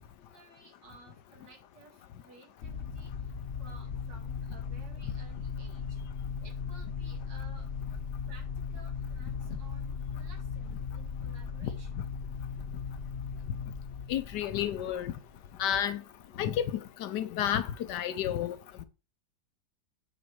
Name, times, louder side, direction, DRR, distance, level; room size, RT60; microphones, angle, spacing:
voice 1, 0.2-6.0 6.4-7.7 8.3-12.0, right 3 dB, 75° right, 2.8 m, -56 dB
sound 1, 2.6-15.6, left 6 dB, 50° left, 0.9 m, -38 dB
voice 2, 14.1-15.1 15.6-16.0 16.4-16.7 17.0-18.8, left 10 dB, 75° left, 1.3 m, -31 dB
8.6 x 4.2 x 4.7 m
omnidirectional pair, 1.9 m